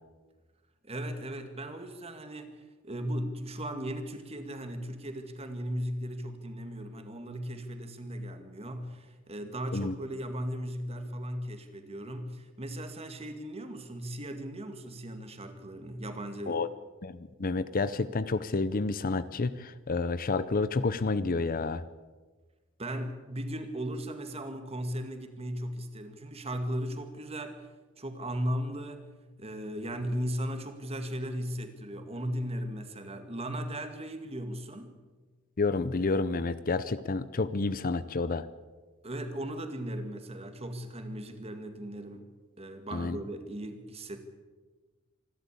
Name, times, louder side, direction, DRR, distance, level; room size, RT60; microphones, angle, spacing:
voice 1, 0.8-16.6 22.8-27.7 28.0-29.1 29.4-35.0 39.0-42.3 42.6-44.2, equal, 30° right, 7 dB, 2.1 m, -37 dB
voice 2, 17.0-21.8 35.6-38.5 42.9-43.2, left 3 dB, 45° left, 15 dB, 0.7 m, -29 dB
26.0 x 12.0 x 8.5 m, 1.4 s
head